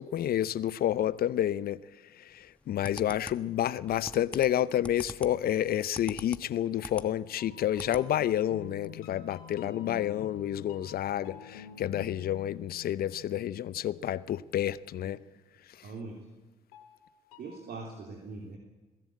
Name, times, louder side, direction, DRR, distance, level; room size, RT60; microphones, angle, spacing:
voice 1, 0.0-1.8 2.2-15.2, left 11 dB, 60° left, 0.7 m, -30 dB
sound 1, 2.4-7.1 7.5-8.1 8.4-8.5 8.8-8.9, left 1 dB, 5° left, 1.3 m, -43 dB
sound 2, 6.8-14.5 16.7-17.6, left 9 dB, 90° left, 2.0 m, -48 dB
voice 2, 15.8-16.2 17.4-18.6, right 3 dB, 60° right, 3.1 m, -42 dB
21.5 x 15.0 x 8.7 m
hypercardioid pair, 50°, 18 cm